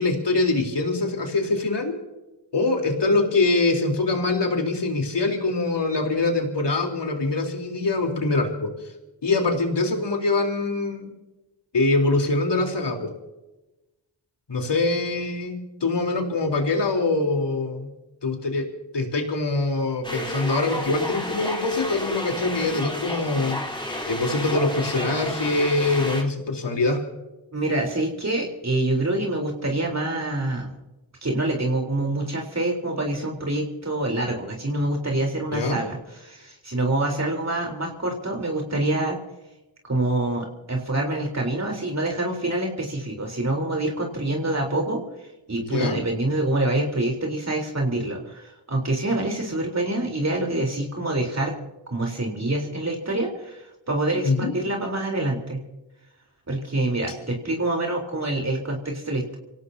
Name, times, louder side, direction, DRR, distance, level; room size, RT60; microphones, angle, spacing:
voice 1, 0.0-2.0 2.5-8.7 9.2-11.1 11.7-13.1 14.5-17.9 18.2-18.7 18.9-23.6 24.1-27.0 35.4-35.8 45.6-46.0 54.2-54.5, left 3 dB, 65° left, 3 dB, 4.0 m, -24 dB
sound 1, 20.0-26.2, left 1 dB, 10° left, 4.1 m, -31 dB
voice 2, 27.5-30.7 31.2-39.2 39.8-51.5 51.9-55.6 56.5-59.4, right 2 dB, 35° right, 1 dB, 4.0 m, -26 dB
26.5 x 17.5 x 2.9 m, 1.0 s
cardioid pair, 45°, 45 cm